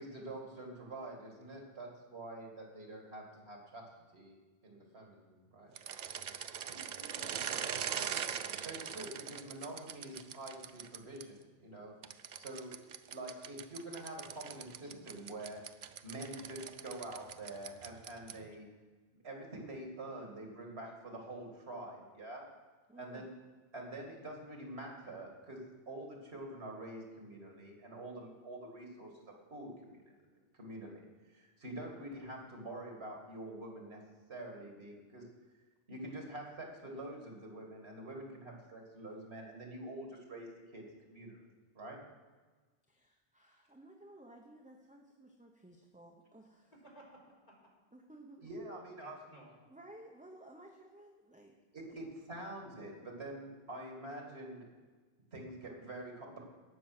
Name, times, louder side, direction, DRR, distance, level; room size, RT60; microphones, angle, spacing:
voice 1, 0.0-3.8 4.1-4.3 4.6-5.7 8.6-11.9 12.3-12.7 13.1-15.6 16.0-18.7 19.2-22.4 22.9-23.3 23.7-25.6 25.9-29.2 29.5-30.1 30.6-34.0 34.3-35.2 35.9-40.5 40.7-41.4 41.8-42.0 48.4-49.2 51.7-54.7 55.3-56.4, right 1 dB, 90° right, 0 dB, 2.6 m, -46 dB
sound 1, 5.7-11.2 12.0-18.5, right 8 dB, 55° right, 0.6 m, -42 dB
voice 2, 6.7-7.6 46.8-47.2 47.5-47.7 49.0-49.5, equal, 50° left, -5 dB, 4.2 m, -56 dB
voice 3, 22.9-23.3 42.9-46.7 47.9-48.5 49.7-51.6, right 1 dB, 10° right, 1 dB, 0.8 m, -56 dB
18.0 x 6.2 x 6.1 m, 1.4 s
omnidirectional pair, 1.1 m